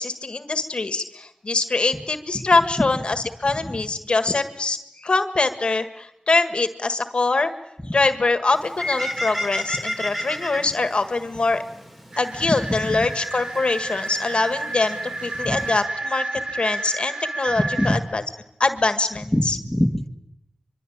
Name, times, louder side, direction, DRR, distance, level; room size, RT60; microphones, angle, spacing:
voice 1, 0.0-7.5 7.9-11.6 12.2-16.2 16.5-18.2 18.6-19.6, left 3 dB, 60° left, 9 dB, 1.7 m, -23 dB
Bird, 8.5-15.8, left 1 dB, 15° right, 5.3 m, -34 dB
sound 1, 12.1-18.0, right 2 dB, 60° right, 3.5 m, -30 dB
voice 2, 12.7-13.1 15.4-15.7 17.6-18.0 19.3-20.1, left 1 dB, 10° left, 3 dB, 2.2 m, -24 dB
24.5 x 24.0 x 8.8 m, 0.82 s
wide cardioid pair, 50°, 2 cm